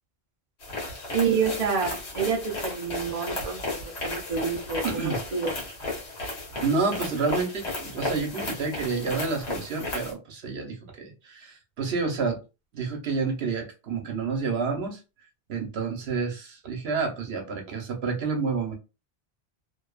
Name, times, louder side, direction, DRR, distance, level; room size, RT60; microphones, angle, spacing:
sound 1, 0.6-10.1, left 2 dB, 75° left, 1.1 m, -34 dB
voice 1, 1.1-5.5, right 6 dB, 55° right, 1 dB, 0.4 m, -28 dB
voice 2, 4.8-5.2 6.6-12.4 12.7-15.0 15.5-18.7, right 4 dB, 75° right, 3 dB, 1.0 m, -29 dB
2.6 x 2.2 x 2.3 m, 0.29 s
omnidirectional pair, 1.1 m